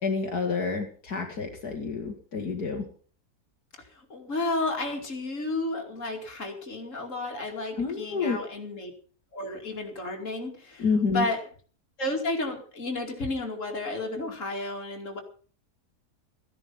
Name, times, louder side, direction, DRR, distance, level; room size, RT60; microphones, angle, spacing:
voice 1, 0.0-2.8 7.8-8.4 10.8-11.3, left 4 dB, 70° left, 1 dB, 2.3 m, -28 dB
voice 2, 4.1-8.9 9.3-10.8 11.1-11.4 12.0-15.2, left 2 dB, 50° left, 2 dB, 2.9 m, -32 dB
15.5 x 11.0 x 5.6 m, 0.43 s
omnidirectional pair, 1.7 m